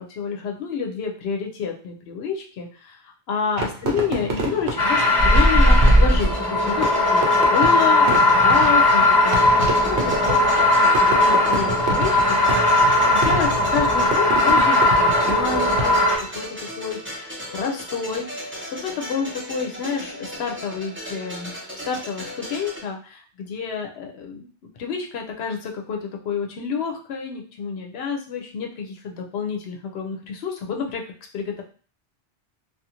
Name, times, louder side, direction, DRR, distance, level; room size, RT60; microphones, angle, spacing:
voice 1, 0.0-16.0 16.3-16.5 16.8-18.5 18.8-21.5 21.8-24.5 24.8-31.0 31.3-31.6, left 6 dB, 75° left, 2 dB, 0.9 m, -29 dB
Fireworks, 3.6-16.3, right 2 dB, 75° right, 0.9 m, -29 dB
sound 1, 4.8-16.2, left 1 dB, 25° left, 0.7 m, -17 dB
sound 2, 5.2-22.8, equal, 15° right, 0.6 m, -36 dB
2.5 x 2.4 x 2.8 m, 0.40 s
omnidirectional pair, 1.1 m